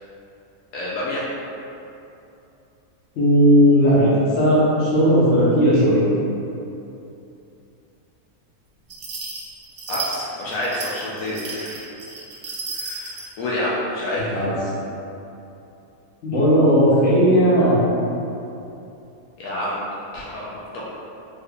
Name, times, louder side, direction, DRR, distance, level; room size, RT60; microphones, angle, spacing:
voice 1, 0.7-1.3 9.9-11.8 12.7-14.4 19.4-19.8 20.1-20.5 20.7-20.8, left 1 dB, 80° left, -7 dB, 1.0 m, -28 dB
voice 2, 3.2-6.0 14.2-14.5 16.2-17.9, equal, 55° left, -8 dB, 1.1 m, -16 dB
sound 1, 8.9-13.3, right 3 dB, 60° right, 0.6 m, -33 dB
3.5 x 3.2 x 2.2 m, 2.8 s
omnidirectional pair, 1.5 m